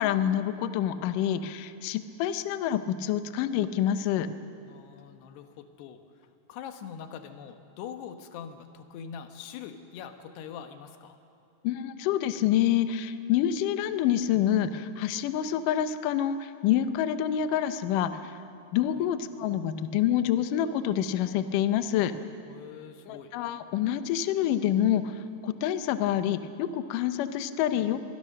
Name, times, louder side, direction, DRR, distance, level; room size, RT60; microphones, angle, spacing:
voice 1, 0.0-4.3 11.6-18.4 18.7-22.1 23.1-28.1, left 10 dB, 75° left, 10 dB, 2.1 m, -27 dB
voice 2, 4.7-6.0 6.5-11.2 19.0-19.1 22.5-23.4, left 8 dB, 90° left, 7 dB, 3.4 m, -43 dB
26.0 x 22.0 x 6.6 m, 2.6 s
omnidirectional pair, 4.7 m